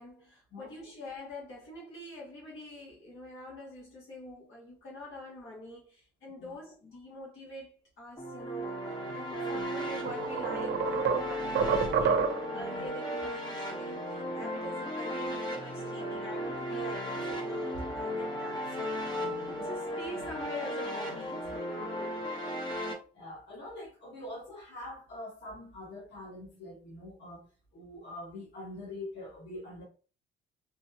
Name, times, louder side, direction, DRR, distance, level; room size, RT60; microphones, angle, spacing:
voice 1, 0.0-7.7 8.0-22.3, left 1 dB, 80° left, 1.6 m, -45 dB
sound 1, 8.2-22.9, equal, 20° left, 0.9 m, -35 dB
sound 2, 9.5-9.6 10.1-12.6, right 6 dB, 65° right, 0.5 m, -29 dB
voice 2, 19.4-19.9 23.1-27.5 27.7-29.8, left 1 dB, 65° left, 1.5 m, -44 dB
3.2 x 2.2 x 2.8 m
cardioid pair, 90°, 20 cm